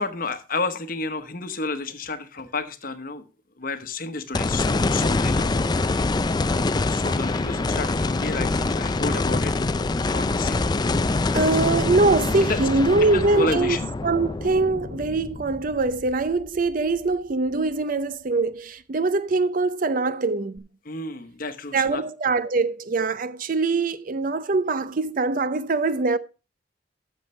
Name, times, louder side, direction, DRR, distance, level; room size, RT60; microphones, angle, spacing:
voice 1, 0.0-3.2 3.6-5.5 5.8-6.0 6.9-9.5 10.1-10.7 11.2-11.4 12.5-12.6 13.0-13.9 20.9-22.0, left 3 dB, 45° left, 1.0 m, -31 dB
sound 1, 4.3-16.7 17.1-17.2 20.6-20.7, left 3 dB, 20° left, 0.3 m, -25 dB
voice 2, 11.3-13.8 14.0-20.6 21.7-26.2, right 3 dB, 45° right, 0.5 m, -23 dB
12.5 x 7.3 x 3.2 m
head